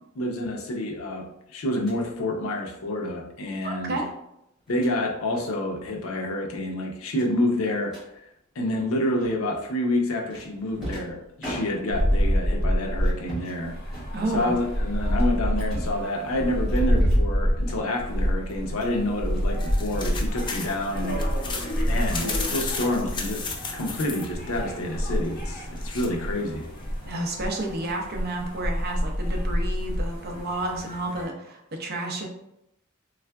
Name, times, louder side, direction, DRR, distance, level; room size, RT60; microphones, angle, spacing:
voice 1, 0.1-4.0 4.7-7.9 8.6-13.8 14.3-21.6 21.8-23.4 23.7-26.7, left 1 dB, 90° left, 2 dB, 0.6 m, -28 dB
sound 1, 1.7-2.0 3.5-3.7 4.6-5.0 5.4-5.6 5.8-6.1 6.3-6.4 7.1-8.1 9.2-9.6 10.3-12.2 13.0-13.6 13.9-14.6 15.1-16.1 16.7-17.3 17.6-18.1 18.4-19.0 19.3-20.1, right 1 dB, 5° right, 1.3 m, -40 dB
voice 2, 3.6-4.1 14.1-14.5 27.0-32.3, right 1 dB, 50° right, 1 dB, 0.5 m, -31 dB
sound 2, 11.9-31.3, equal, 45° left, 1.1 m, -27 dB
sound 3, 19.3-27.2, left 4 dB, 25° left, 0.3 m, -36 dB
3.5 x 2.4 x 2.2 m, 0.81 s
head